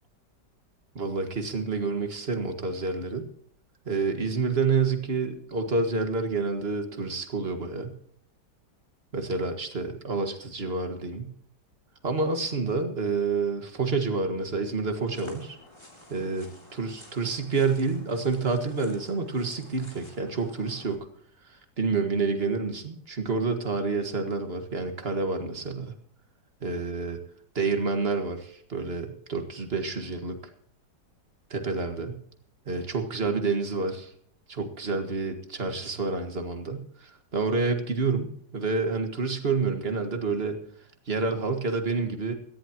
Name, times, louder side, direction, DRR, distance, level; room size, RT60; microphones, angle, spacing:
voice 1, 1.0-3.3 3.9-7.9 9.1-11.3 12.0-15.6 16.1-21.0 21.5-25.9 26.6-27.2 27.6-30.4 31.5-32.2 32.7-34.1 34.5-40.6 41.1-42.3, right 4 dB, 35° right, 6 dB, 1.9 m, -28 dB
sound 1, 15.0-21.0, left 1 dB, 15° left, 3.1 m, -52 dB
18.0 x 14.5 x 3.0 m, 0.63 s
omnidirectional pair, 1.9 m